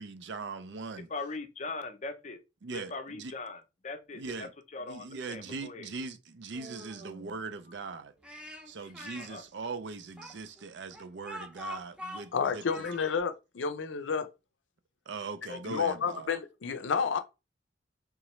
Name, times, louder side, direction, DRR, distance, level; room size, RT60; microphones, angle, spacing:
voice 1, 0.0-1.1 2.6-3.3 4.1-4.5 4.9-8.1 8.7-12.9 15.1-16.3, right 4 dB, 70° right, 0.5 m, -40 dB
voice 2, 1.1-2.4 2.7-5.9 9.2-9.4 15.5-15.8, left 3 dB, 40° left, 0.5 m, -40 dB
Human voice, 6.5-8.2, right 2 dB, 55° right, 0.8 m, -51 dB
Speech, 8.2-9.3 10.2-13.2, left 1 dB, 5° right, 0.6 m, -43 dB
voice 3, 12.3-14.3 15.7-17.2, left 6 dB, 85° left, 0.5 m, -30 dB
3.6 x 3.0 x 3.0 m
head